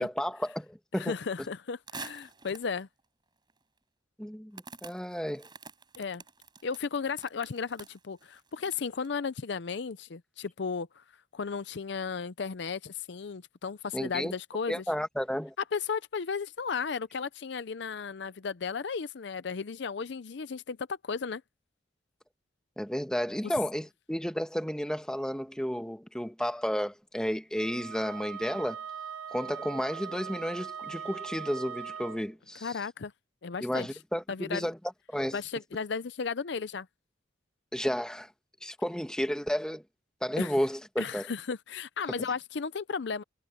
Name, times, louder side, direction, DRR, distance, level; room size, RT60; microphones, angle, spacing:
voice 1, 0.0-1.1 4.2-5.5 13.9-14.3 14.7-15.5 22.8-28.8 29.3-32.7 33.6-34.8 35.1-35.4 37.7-38.3 38.6-39.8 40.2-41.3, equal, 5° left, 1.3 m, -32 dB
voice 2, 0.9-2.9 6.0-6.2 6.6-11.0 11.3-14.8 15.7-21.4 32.6-33.1 33.4-33.9 34.3-34.7 35.3-36.9 40.4-40.5 41.0-43.2, left 5 dB, 60° left, 0.5 m, -34 dB
sound 1, 1.9-2.8 3.5-3.6 4.5-9.1, right 5 dB, 25° right, 5.0 m, -47 dB
Wind instrument woodwind instrument, 27.6-32.3, right 7 dB, 70° right, 2.6 m, -40 dB
head